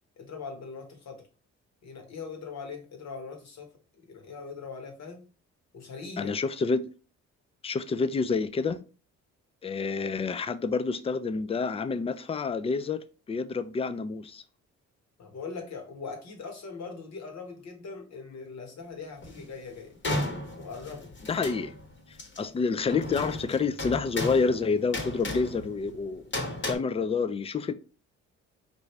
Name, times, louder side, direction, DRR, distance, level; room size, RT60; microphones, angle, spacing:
voice 1, 0.2-1.2 1.8-5.2 5.7-6.3 15.2-20.0 20.5-21.1, left 4 dB, 60° left, 1.4 m, -41 dB
voice 2, 6.2-6.8 7.6-8.8 9.6-13.0 13.3-14.4 21.3-21.7 22.4-26.2 26.7-27.7, left 4 dB, 20° left, 0.4 m, -28 dB
sound 1, 19.2-19.4 20.0-21.9 22.2-22.4 22.9-26.8, left 2 dB, 40° left, 1.3 m, -34 dB
4.7 x 2.6 x 3.2 m
cardioid pair, 90°, 30 cm